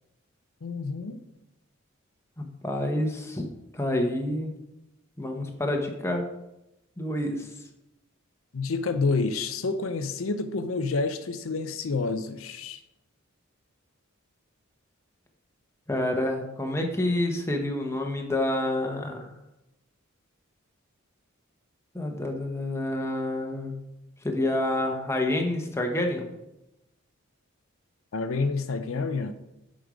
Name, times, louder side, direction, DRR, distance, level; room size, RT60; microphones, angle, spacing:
voice 1, 0.6-1.2 8.5-12.8 28.1-29.3, left 4 dB, 75° left, 0.6 m, -28 dB
voice 2, 2.4-3.4 3.7-4.5 5.2-6.2 7.0-7.5 15.9-19.3 21.9-23.7 24.2-26.3, left 1 dB, 10° left, 1.0 m, -28 dB
7.9 x 5.2 x 5.1 m
head